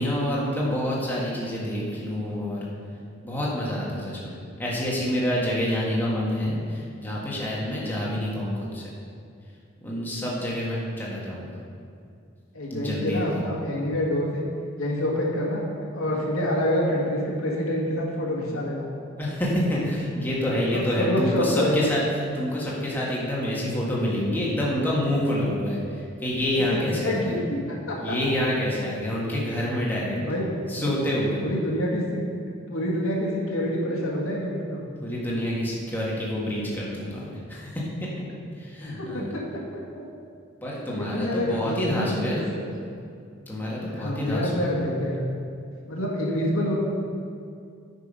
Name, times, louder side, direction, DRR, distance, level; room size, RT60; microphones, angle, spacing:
voice 1, 0.0-2.7 3.2-8.8 9.8-11.6 12.7-13.4 19.2-22.0 22.3-27.4 28.0-30.2 30.7-31.4 35.0-38.1 38.5-39.3 40.6-42.4 43.5-44.7, left 1 dB, 10° left, -6 dB, 1.7 m, -27 dB
voice 2, 12.5-14.4 14.8-15.6 15.9-18.9 20.7-22.0 26.7-27.4 27.7-28.2 30.2-30.5 30.7-31.0 31.4-32.0 32.7-34.8 39.0-39.6 40.0-40.1 40.9-42.6 43.9-45.3 45.9-46.8, left 1 dB, 85° left, -2 dB, 1.8 m, -27 dB
9.4 x 5.4 x 5.4 m, 2.4 s
head